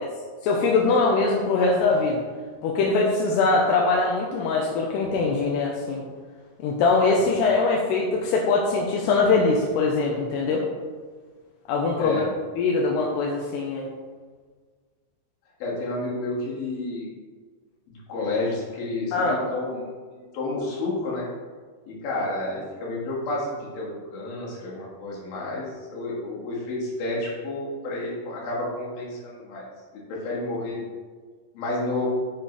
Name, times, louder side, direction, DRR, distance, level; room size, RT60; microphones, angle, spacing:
voice 1, 0.4-2.2 2.6-6.0 6.6-10.6 11.7-12.2 12.6-13.9 19.1-19.4, left 3 dB, 80° left, -1 dB, 2.6 m, -22 dB
voice 2, 12.0-12.3 15.6-17.1 17.9-21.3 21.9-29.7 29.9-30.8 31.5-32.1, left 2 dB, 60° left, -5 dB, 3.3 m, -30 dB
7.4 x 6.5 x 3.2 m, 1.5 s
omnidirectional pair, 5.2 m